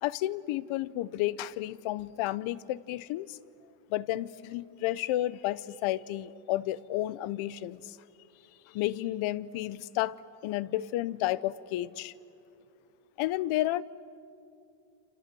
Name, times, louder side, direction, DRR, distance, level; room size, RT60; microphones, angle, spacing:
voice 1, 0.0-3.4 3.9-8.0 8.7-12.1 13.2-13.8, left 15 dB, 80° left, 18 dB, 0.9 m, -32 dB
28.0 x 27.0 x 7.7 m, 2.6 s
cardioid pair, 100°, 48 cm